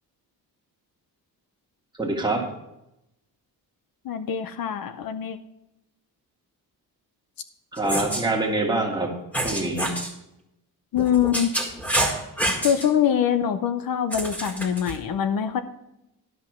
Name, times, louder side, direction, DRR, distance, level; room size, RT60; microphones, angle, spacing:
voice 1, 2.0-2.5 7.7-9.1 9.4-9.9, right 2 dB, 10° right, 0 dB, 1.7 m, -25 dB
voice 2, 4.0-5.4 10.9-11.5 12.6-15.6, left 9 dB, 65° left, 10 dB, 0.7 m, -24 dB
sound 1, 7.8-8.2 9.3-10.1 10.9-12.9 14.1-15.0, right 1 dB, 5° left, 1.8 m, -27 dB
11.0 x 5.7 x 5.9 m, 0.87 s
cardioid pair, 140°, 38 cm